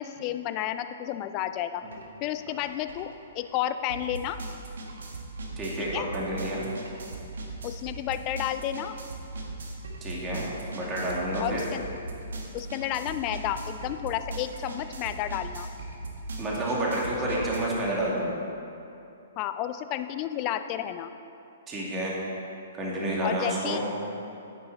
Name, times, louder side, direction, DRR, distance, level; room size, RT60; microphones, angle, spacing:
voice 1, 0.0-1.8 2.2-4.4 5.9-6.1 7.6-8.9 11.4-11.8 12.5-15.7 19.4-21.1 23.2-23.8, left 12 dB, 35° left, 10 dB, 0.5 m, -31 dB
sound 1, 1.9-2.1 2.4-17.6, right 2 dB, 70° right, 1.5 m, -39 dB
voice 2, 5.6-6.7 10.0-10.5 10.7-11.6 16.4-18.3 21.7-22.1 22.8-23.8, right 1 dB, 20° right, -5 dB, 2.3 m, -29 dB
10.5 x 9.5 x 4.1 m, 2.8 s
figure-of-eight pair, 120°, 0 cm